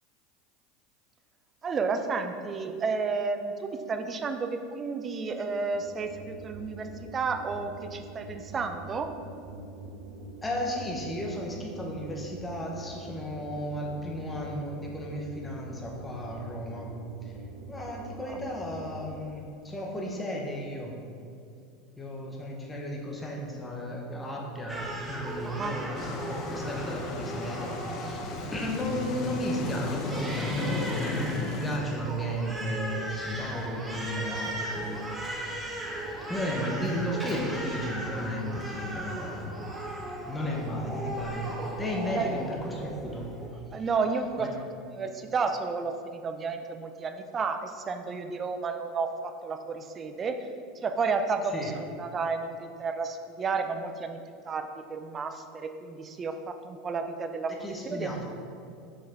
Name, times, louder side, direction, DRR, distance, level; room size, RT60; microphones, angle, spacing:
voice 1, 1.6-9.1 18.3-18.4 25.5-25.8 42.1-42.3 43.7-44.5 44.9-50.4 50.8-58.1, right 4 dB, 30° right, 7 dB, 0.5 m, -32 dB
sound 1, 5.7-19.4, right 2 dB, 80° right, 0.9 m, -44 dB
voice 2, 10.4-16.9 17.2-17.3 17.7-20.9 22.0-35.7 36.3-39.8 40.3-43.3 43.7-43.8 44.4-44.5 51.5-51.7 57.6-58.3, equal, 15° left, -1 dB, 0.9 m, -34 dB
Crying sobbing, 24.7-43.5, right 1 dB, 10° right, 0.9 m, -37 dB
sound 2, 25.9-31.8, left 3 dB, 50° left, 0.7 m, -34 dB
5.7 x 5.2 x 4.2 m, 2.5 s
supercardioid pair, 115°, 0 cm